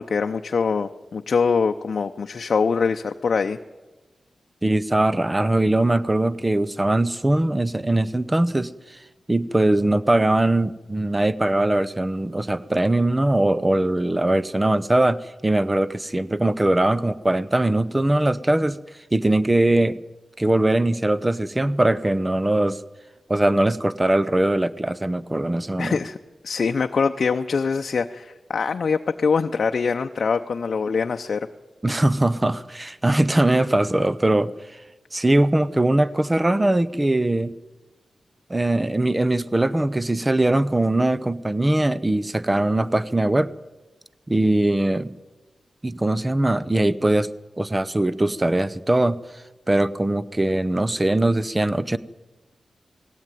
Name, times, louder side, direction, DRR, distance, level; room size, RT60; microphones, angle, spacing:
voice 1, 0.0-3.6 25.8-26.2 26.4-31.5, left 5 dB, 60° left, 6 dB, 0.7 m, -23 dB
voice 2, 4.6-8.7 9.3-18.8 19.1-20.0 20.4-22.8 23.3-26.0 31.8-34.5 35.1-37.5 38.5-43.5 44.3-45.1 45.8-47.3 47.6-49.2 49.7-52.0, right 1 dB, 20° right, 16 dB, 0.8 m, -21 dB
19.5 x 16.5 x 9.3 m, 1.2 s
wide cardioid pair, 90°, 0 cm